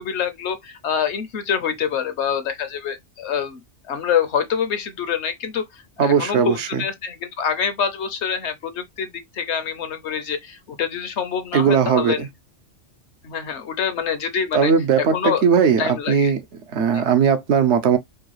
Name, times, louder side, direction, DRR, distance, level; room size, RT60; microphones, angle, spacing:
voice 1, 0.0-3.6 3.9-12.2 13.2-14.7 15.0-15.5 15.8-16.3 16.9-17.0, left 7 dB, 70° left, 1.0 m, -26 dB
voice 2, 6.0-6.8 11.5-12.3 14.5-16.4 16.7-18.0, right 7 dB, 70° right, 1.0 m, -18 dB
4.6 x 2.3 x 3.0 m
omnidirectional pair, 1.3 m